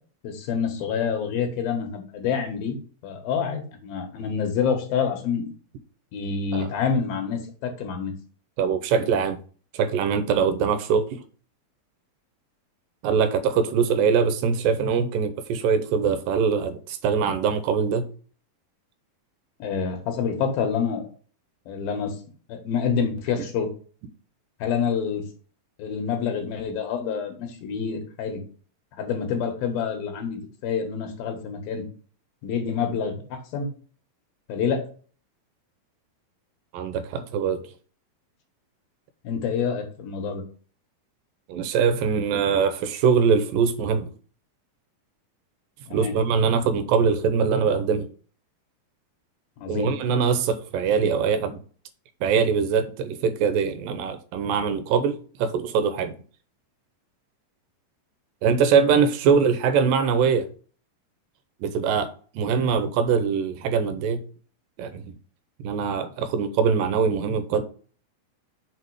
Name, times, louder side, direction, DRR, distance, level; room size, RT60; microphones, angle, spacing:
voice 1, 0.2-2.8 3.0-5.5 6.1-8.1 19.6-21.1 21.7-22.1 22.5-23.7 24.6-25.2 25.8-28.4 29.0-31.8 32.4-33.2 33.5-33.7 34.5-34.8 39.2-40.4 45.9-46.1 49.6-49.9, left 6 dB, 85° left, 3.4 m, -27 dB
voice 2, 8.6-9.4 9.7-11.2 13.0-18.1 36.7-37.7 41.5-44.1 45.9-48.1 49.7-51.6 52.2-56.2 58.4-60.5 61.6-64.2 64.8-65.2 65.6-67.6, right 6 dB, 75° right, 2.5 m, -23 dB
6.6 x 4.9 x 4.8 m
omnidirectional pair, 4.1 m